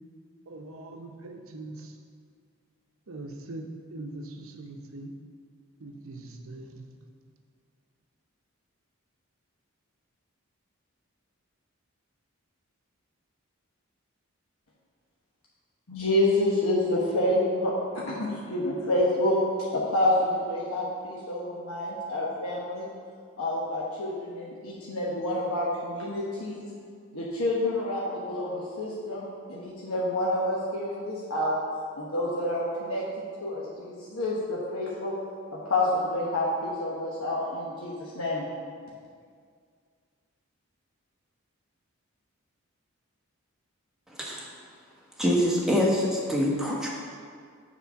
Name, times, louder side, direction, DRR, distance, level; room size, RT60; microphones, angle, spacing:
voice 1, 0.5-1.9 3.1-5.1 5.8-6.9, right 2 dB, 75° right, 4 dB, 0.7 m, -41 dB
voice 2, 15.9-19.4 19.7-22.9 23.4-26.7 27.1-31.6 32.0-35.1 35.5-38.4, left 1 dB, 85° left, -6 dB, 1.1 m, -28 dB
voice 3, 45.2-46.9, equal, ahead, -4 dB, 1.0 m, -25 dB
7.2 x 4.3 x 5.7 m, 2.1 s
head